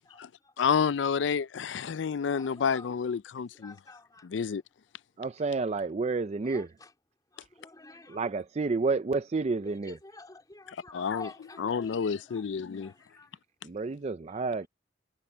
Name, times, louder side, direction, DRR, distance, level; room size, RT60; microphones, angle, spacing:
voice 1, 0.1-0.6 1.9-2.9 3.5-4.3 6.4-6.9 7.3-8.3 9.6-13.3 14.3-14.7, left 3 dB, 20° left, 2.8 m, -51 dB
voice 2, 0.6-3.7 4.2-4.6 10.9-11.3 11.6-12.9, left 6 dB, 85° left, 0.4 m, -29 dB
voice 3, 5.2-6.7 8.1-9.9 13.6-14.7, right 4 dB, 35° right, 0.4 m, -30 dB
head